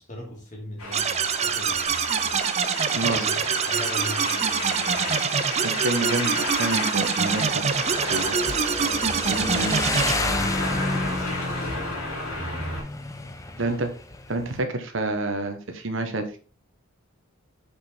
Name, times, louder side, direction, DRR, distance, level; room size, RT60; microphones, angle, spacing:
voice 1, 0.0-2.3 3.1-5.3 8.7-9.7 10.0-12.8 14.4-14.5, equal, 35° left, -1 dB, 2.7 m, -39 dB
sound 1, 0.8-12.8, left 2 dB, 85° left, 2.7 m, -33 dB
sound 2, 0.9-10.2, right 6 dB, 30° right, 0.5 m, -25 dB
voice 2, 2.9-3.4 5.6-7.7 8.1-8.9 9.3-9.7 13.6-13.9 14.3-16.4, right 2 dB, 60° right, 6 dB, 1.1 m, -29 dB
Motorcycle, 6.4-14.6, left 2 dB, 15° left, 0.7 m, -31 dB
6.8 x 5.3 x 4.4 m, 0.36 s
head